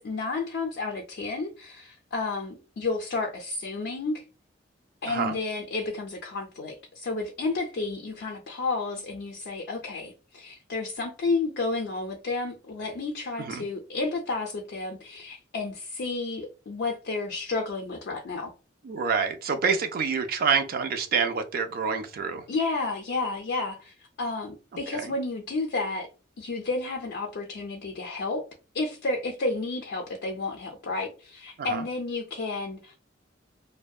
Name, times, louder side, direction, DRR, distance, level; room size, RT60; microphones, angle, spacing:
voice 1, 0.0-4.2 5.0-18.5 22.5-26.1 26.4-28.4 28.7-33.0, left 3 dB, 60° left, 0.4 m, -31 dB
voice 2, 5.1-5.4 13.4-13.7 18.8-22.4 24.9-25.1 31.6-31.8, right 5 dB, 50° right, 0.4 m, -27 dB
2.6 x 2.1 x 2.2 m
head